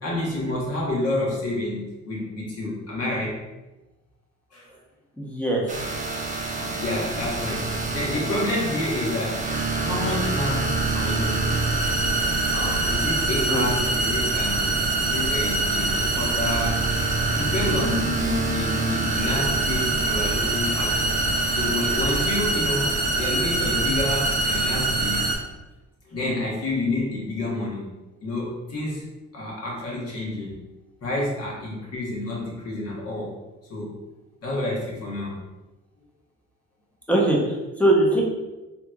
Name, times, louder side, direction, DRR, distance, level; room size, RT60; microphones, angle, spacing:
voice 1, 0.0-3.4 4.5-4.8 6.5-9.4 9.8-11.8 12.5-16.8 17.3-21.2 21.6-25.3 26.0-27.8 28.2-29.1 29.3-30.6 31.0-33.3 33.6-33.9 34.4-35.4, left 2 dB, 55° left, -4 dB, 1.3 m, -29 dB
voice 2, 5.2-5.6 13.5-13.6 17.3-17.5 37.1-38.2, right 1 dB, 5° left, -3 dB, 0.8 m, -21 dB
sound 1, 5.7-25.4, right 3 dB, 25° right, 0.6 m, -25 dB
3.3 x 2.9 x 2.4 m, 1.1 s
cardioid pair, 90°, 30 cm